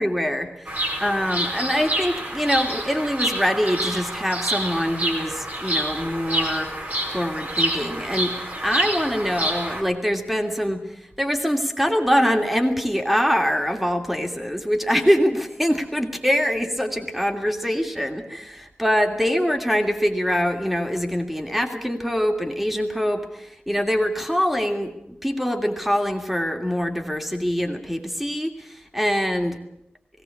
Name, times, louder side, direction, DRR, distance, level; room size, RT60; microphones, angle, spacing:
voice 1, 0.0-6.7 7.1-8.4 8.6-29.6, equal, 5° right, 5 dB, 2.8 m, -24 dB
Bird vocalization bird call bird song, 0.7-9.8, right 1 dB, 45° right, 4.9 m, -27 dB
19.0 x 17.5 x 8.7 m, 0.77 s
wide cardioid pair, 65°, 4 cm